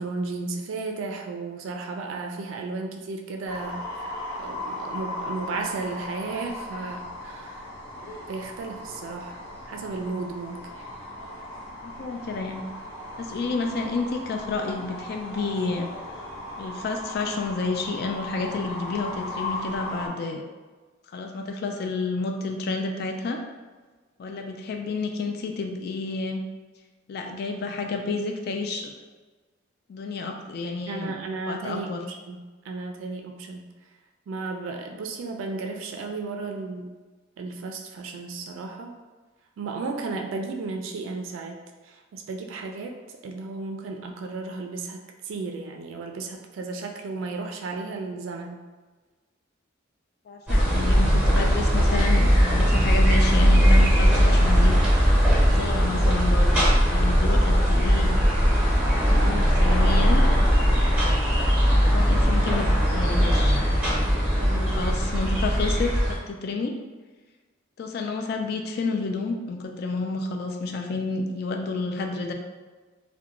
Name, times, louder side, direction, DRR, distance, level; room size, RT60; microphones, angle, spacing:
voice 1, 0.0-4.0 4.4-7.7 8.3-9.4 9.7-10.6 30.9-32.4 32.7-33.6 34.3-37.0 37.4-38.9 39.6-41.6 41.8-43.0 43.2-48.6 64.4-64.9, right 3 dB, 80° right, 3 dB, 0.3 m, -34 dB
sound 1, 3.5-20.1, left 1 dB, 85° left, 0.7 m, -37 dB
voice 2, 11.8-12.6 13.2-15.9 16.6-20.4 21.1-23.4 24.2-26.4 27.1-28.9 29.9-31.1 31.5-32.0 50.3-54.8 55.4-58.2 59.1-60.2 61.4-63.6 64.5-66.8 67.8-72.3, left 3 dB, 55° left, 3 dB, 0.3 m, -30 dB
sound 2, 50.5-66.2, equal, 10° right, 0.7 m, -19 dB
2.4 x 2.1 x 2.8 m, 1.3 s
head